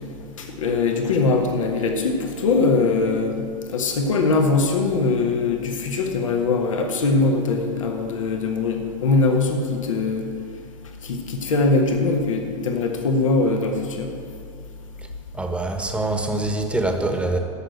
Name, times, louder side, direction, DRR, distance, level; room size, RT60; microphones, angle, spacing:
voice 1, 0.4-10.2 11.0-14.1, left 3 dB, 80° left, 3 dB, 1.4 m, -22 dB
voice 2, 15.3-17.4, right 2 dB, 5° right, 5 dB, 1.3 m, -24 dB
12.5 x 6.4 x 8.0 m, 2.3 s
hypercardioid pair, 95°, 17 cm